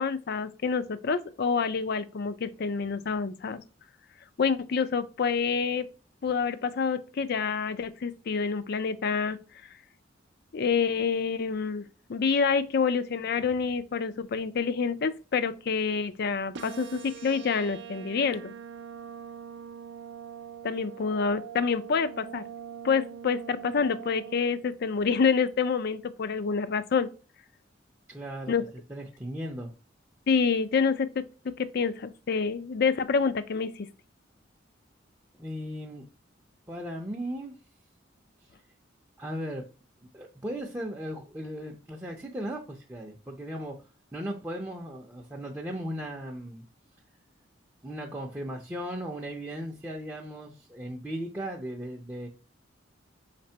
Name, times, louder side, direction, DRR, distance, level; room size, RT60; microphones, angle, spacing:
voice 1, 0.0-3.6 4.4-5.9 6.2-9.4 10.5-18.5 20.6-22.4 22.8-27.1 28.5-28.6 30.3-31.2 31.6-33.9, left 5 dB, 55° left, 0.4 m, -27 dB
sound 1, 16.5-24.6, right 8 dB, 65° right, 0.5 m, -43 dB
voice 2, 28.1-28.5 28.9-29.7 35.4-36.1 36.7-37.5 39.2-39.6 40.1-43.8 44.1-46.6 47.8-52.3, equal, 10° right, 0.5 m, -37 dB
4.9 x 3.3 x 2.7 m
head